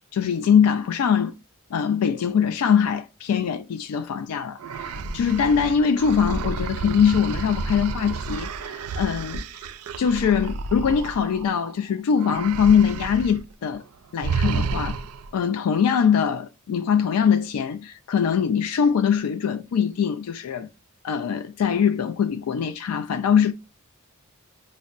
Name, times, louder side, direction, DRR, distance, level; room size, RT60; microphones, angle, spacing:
voice 1, 0.1-1.3 1.7-9.4 10.0-13.8 14.1-15.0 15.3-20.7 21.0-23.5, left 7 dB, 90° left, 0.3 m, -22 dB
sound 1, 4.6-11.7 12.2-13.4 13.7-13.9 14.2-15.3, right 4 dB, 90° right, 0.4 m, -31 dB
5.2 x 2.1 x 2.4 m
head